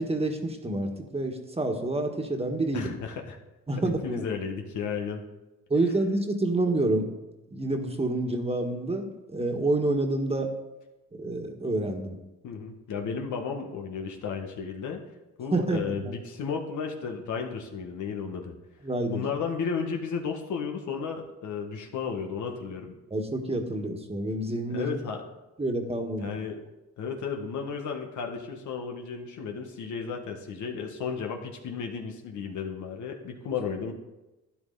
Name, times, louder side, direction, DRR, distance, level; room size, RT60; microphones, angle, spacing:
voice 1, 0.0-3.0 3.7-4.3 5.7-7.1 7.5-10.5 11.1-12.2 15.5-16.1 18.8-19.2 23.1-24.9 25.6-26.4, right 2 dB, 20° right, 4 dB, 1.7 m, -28 dB
voice 2, 2.7-3.4 3.8-5.2 12.4-15.0 15.4-18.5 19.1-22.9 24.7-25.2 26.2-26.6 27.0-33.9, left 6 dB, 75° left, 3 dB, 1.7 m, -33 dB
12.0 x 10.5 x 4.1 m, 1.0 s
cardioid pair, 90°, 30 cm